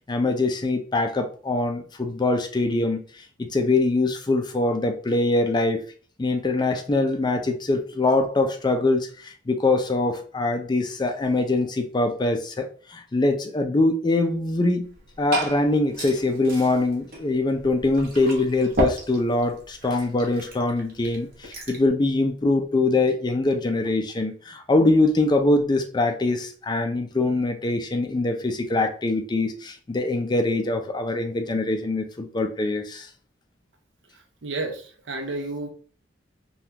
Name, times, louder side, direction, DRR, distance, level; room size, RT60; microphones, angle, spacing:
voice 1, 0.1-3.0 3.4-5.8 6.2-14.9 15.2-33.1, left 2 dB, 25° left, 6 dB, 0.4 m, -23 dB
Liquid, 14.8-21.9, right 2 dB, 50° right, 1.0 m, -34 dB
voice 2, 34.4-34.8 35.1-35.7, right 2 dB, 70° right, 3 dB, 0.6 m, -30 dB
3.4 x 2.3 x 2.8 m, 0.40 s
head